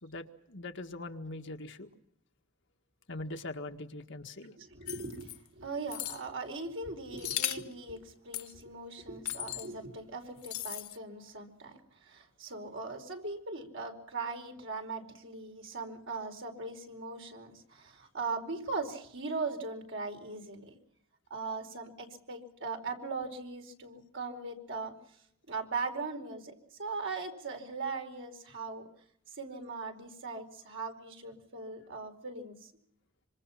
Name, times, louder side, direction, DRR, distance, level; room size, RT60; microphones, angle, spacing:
voice 1, 0.0-1.9 3.1-4.5, left 2 dB, 55° left, 5 dB, 1.7 m, -42 dB
voice 2, 4.6-20.7 21.3-24.9 25.5-26.5 26.8-28.9 29.3-32.7, right 3 dB, 55° right, 4 dB, 4.7 m, -39 dB
sound 1, 4.9-5.4 5.9-6.2 7.2-7.7 8.3-8.5 9.2-9.7 10.4-11.0, left 13 dB, 75° left, 1.3 m, -36 dB
26.5 x 26.0 x 5.8 m, 0.69 s
head